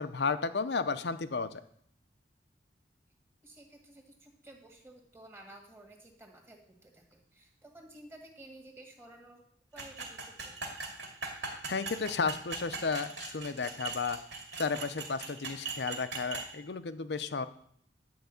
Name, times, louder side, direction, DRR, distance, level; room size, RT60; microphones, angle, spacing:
voice 1, 0.0-1.6 11.5-14.2 14.6-17.5, left 4 dB, 65° left, 12 dB, 0.6 m, -33 dB
voice 2, 3.4-9.4 9.7-10.7, right 1 dB, 15° right, 1 dB, 1.7 m, -53 dB
sound 1, 9.8-16.5, right 4 dB, 70° right, 2.3 m, -40 dB
10.5 x 4.7 x 8.0 m, 0.66 s
head